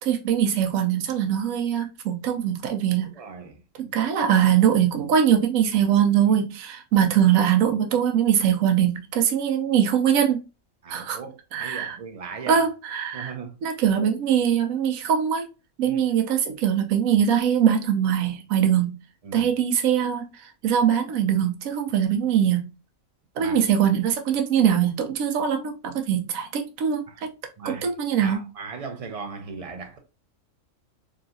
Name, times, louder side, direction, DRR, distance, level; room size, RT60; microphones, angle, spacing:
voice 1, 0.0-3.1 3.9-10.4 10.9-11.2 11.5-12.0 12.5-13.3 13.6-15.5 15.8-19.0 19.3-22.7 23.4-27.3 27.6-28.4, right 9 dB, 80° right, 1.0 m, -22 dB
voice 2, 3.1-4.1 10.8-12.7 13.1-13.6 15.9-16.0 19.2-19.5 23.4-23.6 27.1-27.2 27.6-27.9 28.2-30.0, right 5 dB, 45° right, 0.4 m, -38 dB
3.8 x 2.3 x 2.6 m
omnidirectional pair, 1.4 m